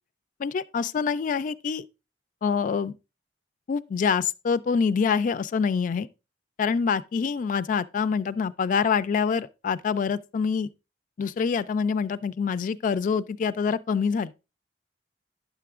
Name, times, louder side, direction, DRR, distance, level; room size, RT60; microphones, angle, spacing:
voice 1, 0.4-1.8 2.4-3.0 3.7-6.1 6.6-10.7 11.2-14.3, left 6 dB, 45° left, 0.3 m, -26 dB
9.8 x 6.7 x 2.4 m
head